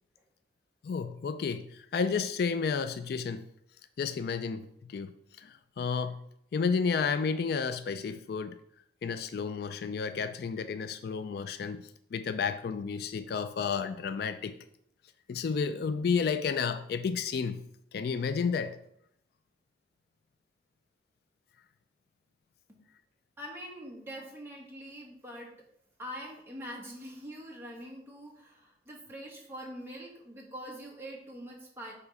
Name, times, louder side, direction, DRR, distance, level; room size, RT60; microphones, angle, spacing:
voice 1, 0.8-3.4 4.0-6.2 6.5-8.6 9.0-14.6 15.3-17.6 17.9-18.8, left 5 dB, 55° left, 11 dB, 0.3 m, -31 dB
voice 2, 23.4-25.5 26.0-31.9, equal, 15° right, -3 dB, 1.6 m, -44 dB
6.9 x 3.6 x 5.4 m, 0.74 s
head